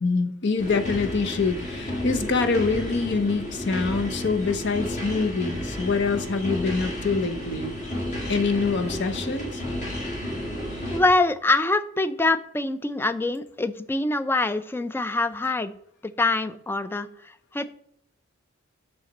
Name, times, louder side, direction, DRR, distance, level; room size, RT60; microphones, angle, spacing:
voice 1, 0.0-7.8 8.3-9.6, left 4 dB, 55° left, 8 dB, 0.7 m, -25 dB
sound 1, 0.6-11.0, equal, 35° left, 1.8 m, -32 dB
voice 2, 10.9-15.7 16.0-17.1 17.5-17.7, left 2 dB, 10° left, 12 dB, 0.3 m, -24 dB
6.5 x 5.6 x 4.1 m, 0.71 s
head